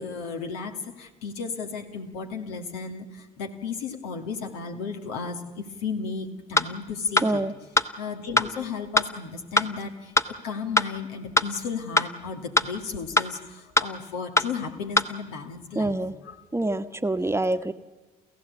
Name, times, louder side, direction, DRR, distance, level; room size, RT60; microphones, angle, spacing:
voice 1, 0.0-7.4 8.0-16.0 16.2-16.4, left 5 dB, 80° left, 5 dB, 1.9 m, -34 dB
sound 1, 6.6-6.7 7.2-7.3 7.8-7.9 8.4-8.5 9.0-9.1 9.6-9.7 10.2-10.3 10.8-10.9 11.4-11.5 12.0-12.1 12.6-12.7 13.2-13.3 13.8-13.9 14.4-14.5 15.0-15.1, left 2 dB, 15° left, 1.1 m, -20 dB
voice 2, 7.2-7.5 15.7-16.1 16.5-17.7, right 2 dB, 15° right, 9 dB, 1.1 m, -26 dB
28.5 x 15.0 x 8.3 m, 1.2 s
hypercardioid pair, 60°, 19 cm